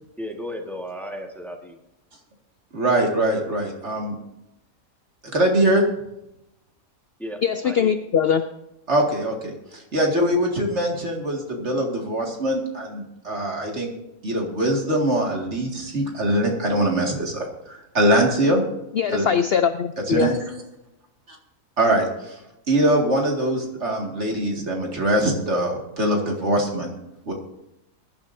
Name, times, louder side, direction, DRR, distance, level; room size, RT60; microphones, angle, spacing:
voice 1, 0.2-1.8 7.2-7.9, equal, ahead, 2 dB, 1.4 m, -34 dB
voice 2, 2.7-4.2 5.3-5.8 8.9-13.9 14.2-18.6 19.1-19.3 20.1-20.3 21.3-21.4 21.8-22.4 22.7-26.9 27.3-27.4, right 1 dB, 50° right, 1 dB, 2.3 m, -22 dB
voice 3, 7.4-8.4 18.9-20.3, left 7 dB, 60° left, 9 dB, 0.6 m, -21 dB
21.0 x 11.0 x 2.6 m, 0.88 s
omnidirectional pair, 1.5 m